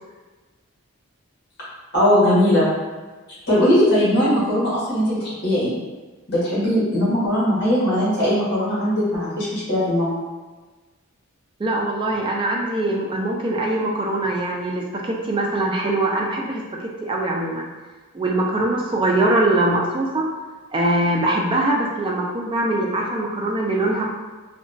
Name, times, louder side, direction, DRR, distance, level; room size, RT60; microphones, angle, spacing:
voice 1, 1.9-2.7 3.5-5.7 6.3-10.1, equal, 50° left, -9 dB, 1.3 m, -19 dB
voice 2, 11.6-17.7 18.1-20.3 20.7-24.1, right 2 dB, 20° right, -1 dB, 0.3 m, -22 dB
2.9 x 2.2 x 2.6 m, 1.3 s
head